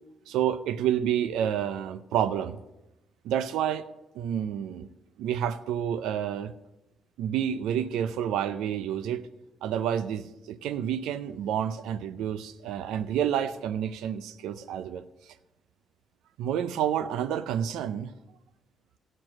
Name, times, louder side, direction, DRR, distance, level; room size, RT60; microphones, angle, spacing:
voice 1, 0.3-2.6 3.2-3.8 4.1-4.9 5.2-6.5 7.2-9.3 9.6-15.0 16.4-18.1, right 9 dB, 90° right, 13 dB, 0.5 m, -29 dB
12.0 x 7.9 x 6.3 m, 0.95 s
cardioid pair, 90°, 0 cm